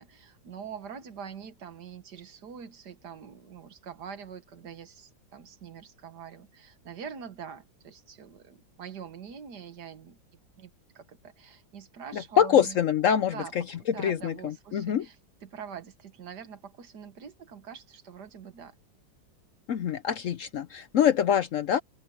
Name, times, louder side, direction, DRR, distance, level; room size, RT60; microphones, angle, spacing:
voice 1, 0.0-10.2 10.6-12.8 13.3-15.2 15.4-18.8, right 7 dB, 65° right, 1.9 m, -44 dB
voice 2, 12.1-15.1 19.7-21.8, left 8 dB, 70° left, 0.8 m, -25 dB
open air
omnidirectional pair, 2.0 m